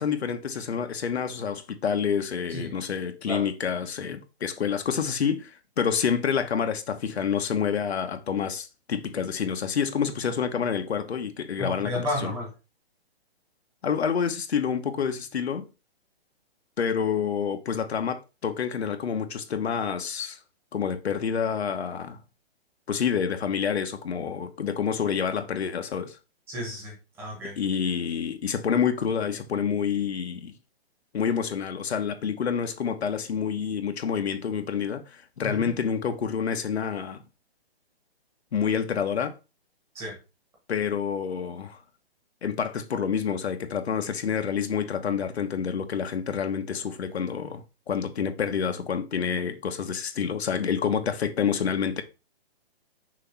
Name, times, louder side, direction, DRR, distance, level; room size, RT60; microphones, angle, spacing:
voice 1, 0.0-12.3 13.8-15.7 16.8-20.4 20.7-22.2 22.9-26.2 27.6-30.5 31.1-37.2 38.5-39.3 40.7-41.8 42.4-52.0, left 7 dB, 90° left, 1.2 m, -28 dB
voice 2, 11.6-12.5 26.5-27.6 35.4-35.7 39.9-40.2, left 1 dB, 10° right, 1.2 m, -32 dB
6.3 x 2.9 x 5.8 m
hypercardioid pair, 175°, 31 cm